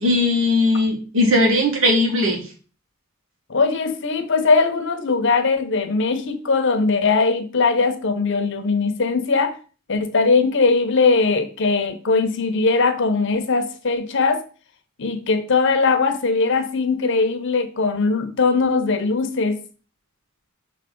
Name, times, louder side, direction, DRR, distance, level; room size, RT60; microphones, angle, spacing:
voice 1, 0.0-2.4, left 1 dB, 70° right, 1.8 m, -18 dB
voice 2, 3.5-9.6 9.9-14.4 15.0-19.6, left 4 dB, 60° left, 0.9 m, -20 dB
5.9 x 3.4 x 5.3 m
head